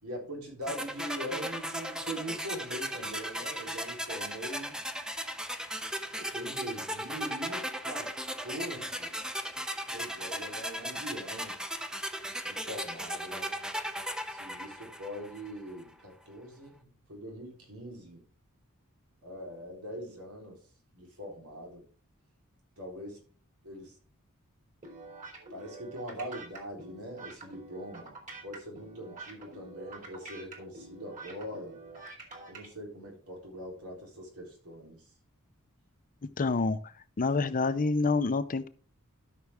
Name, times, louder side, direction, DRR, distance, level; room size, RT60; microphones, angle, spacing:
voice 1, 0.0-4.8 6.2-8.1 8.4-9.1 9.9-11.8 12.4-13.6 14.3-18.2 19.2-20.6 20.9-21.8 22.8-23.2 23.6-24.0 25.5-31.8 32.5-35.1, equal, 90° right, 4.0 m, -42 dB
sound 1, 0.7-15.6, equal, 5° right, 0.7 m, -37 dB
sound 2, 24.8-32.7, right 3 dB, 35° right, 2.7 m, -47 dB
voice 2, 36.4-36.8 37.2-38.7, left 3 dB, 40° left, 0.6 m, -27 dB
12.5 x 5.8 x 3.6 m
head